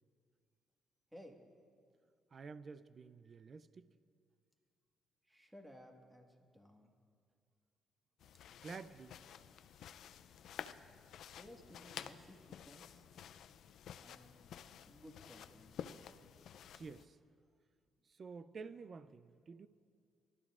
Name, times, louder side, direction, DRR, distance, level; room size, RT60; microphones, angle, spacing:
voice 1, 2.3-3.9 8.6-9.2 16.7-17.2 18.1-19.7, right 4 dB, 45° right, 14 dB, 0.4 m, -50 dB
voice 2, 5.3-6.9 11.3-13.0 14.0-14.5 14.8-15.8, equal, 5° right, 2 dB, 1.6 m, -58 dB
sound 1, 8.2-17.0, left 9 dB, 75° left, 0.4 m, -52 dB
25.5 x 12.5 x 2.5 m, 2.2 s
cardioid pair, 90°, 0 cm